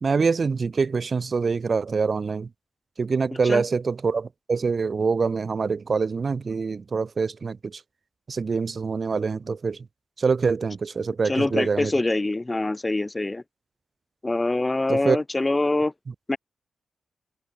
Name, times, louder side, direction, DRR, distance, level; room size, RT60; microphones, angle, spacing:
voice 1, 0.0-2.5 3.0-7.8 8.3-9.9 10.2-11.9 14.9-15.2, right 5 dB, 55° right, 0.3 m, -25 dB
voice 2, 11.3-13.4 14.2-15.9 16.3-16.4, left 2 dB, 25° left, 0.3 m, -24 dB
open air
supercardioid pair, 40°, 0 cm